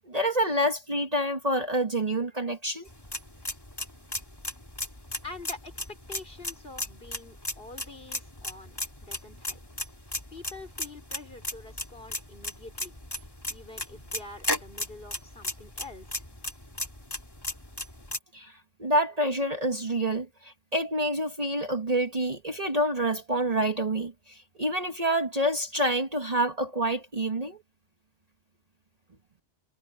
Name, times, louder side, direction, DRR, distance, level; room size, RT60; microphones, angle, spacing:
voice 1, 0.1-2.9 18.3-27.6, right 1 dB, 35° right, 1.3 m, -27 dB
sound 1, 2.9-18.2, left 1 dB, 20° left, 2.5 m, -36 dB
voice 2, 5.2-5.7 6.1-9.6 10.3-16.3, left 3 dB, 50° left, 4.7 m, -46 dB
omnidirectional pair, 1.2 m